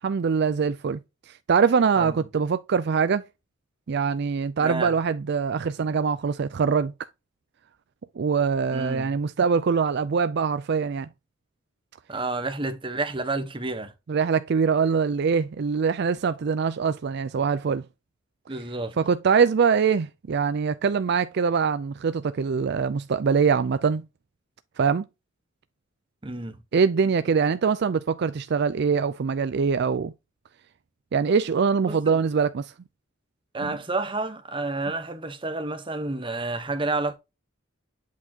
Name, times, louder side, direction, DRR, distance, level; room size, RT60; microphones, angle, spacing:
voice 1, 0.0-1.0 1.3-3.2 3.9-6.9 8.2-11.1 14.1-17.8 19.0-24.0 24.8-25.1 26.7-30.1 31.1-32.7 33.6-33.8, right 5 dB, 55° right, 0.4 m, -23 dB
voice 2, 4.6-4.9 8.7-9.1 12.1-13.9 18.5-19.0 26.2-26.6 31.9-32.2 33.5-37.2, right 2 dB, 25° right, 1.0 m, -30 dB
8.2 x 4.3 x 2.8 m
head